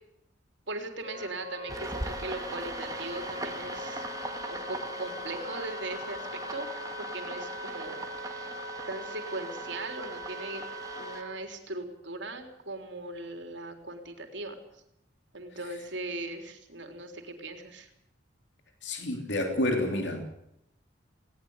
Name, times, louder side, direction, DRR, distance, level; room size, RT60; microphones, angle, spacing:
voice 1, 0.7-6.2 6.5-6.7 7.0-8.5 8.9-10.6 11.0-14.6 15.3-17.9, right 2 dB, 65° right, 3.6 m, -39 dB
Wind instrument woodwind instrument, 1.0-11.3, left 1 dB, 35° left, 6.9 m, -41 dB
sound 1, 1.7-11.2, right 2 dB, 20° right, 2.1 m, -41 dB
voice 2, 18.8-20.2, left 1 dB, 60° left, 3.2 m, -29 dB
20.0 x 18.5 x 8.1 m
head